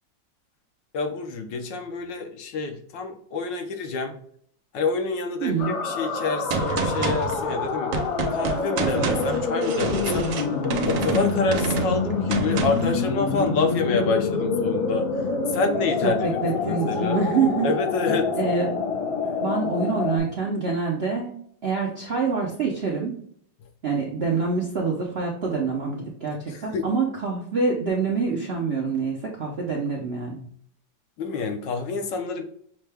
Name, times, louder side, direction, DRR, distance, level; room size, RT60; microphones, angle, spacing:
voice 1, 0.9-4.1 4.7-8.0 8.3-10.3 10.6-15.1 15.5-16.3 16.5-17.3 17.6-18.3 26.5-26.9 31.2-32.4, left 3 dB, 75° left, 5 dB, 1.4 m, -27 dB
voice 2, 5.4-5.8 16.0-17.7 18.4-18.7 19.4-21.3 21.6-23.2 23.8-30.5, right 4 dB, 60° right, -2 dB, 0.6 m, -26 dB
sound 1, 5.6-20.2, left 4 dB, 90° left, 1.9 m, -27 dB
Gunshot gunfire, 6.5-13.0, right 5 dB, 80° right, 1.4 m, -28 dB
6.3 x 2.2 x 3.3 m, 0.62 s
omnidirectional pair, 2.0 m